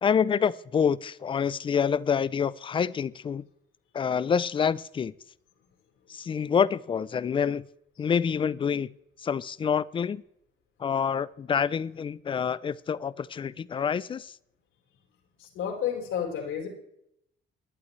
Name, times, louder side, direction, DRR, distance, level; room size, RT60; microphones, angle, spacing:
voice 1, 0.0-3.5 3.9-5.1 6.1-7.7 8.0-8.9 9.2-10.2 10.8-14.3, left 7 dB, 25° left, 19 dB, 0.4 m, -27 dB
voice 2, 15.4-16.7, left 8 dB, 80° left, 1 dB, 4.5 m, -31 dB
18.0 x 11.5 x 3.2 m, 0.77 s
cardioid pair, 155°, 20 cm